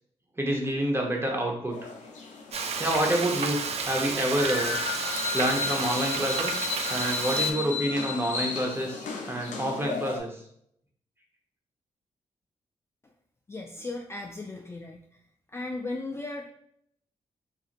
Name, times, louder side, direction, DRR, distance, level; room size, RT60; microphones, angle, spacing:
voice 1, 0.4-1.9 2.8-3.6 3.9-4.8 5.3-6.6 6.9-10.3, right 1 dB, 20° right, 1 dB, 0.8 m, -28 dB
sound 1, 1.7-10.2, left 5 dB, 85° left, 0.5 m, -34 dB
Frying (food), 2.5-7.5, right 5 dB, 55° right, 0.4 m, -31 dB
voice 2, 13.5-15.1 15.5-16.5, left 2 dB, 20° left, 1 dB, 0.3 m, -36 dB
2.9 x 2.4 x 2.4 m, 0.68 s
cardioid pair, 65°, 13 cm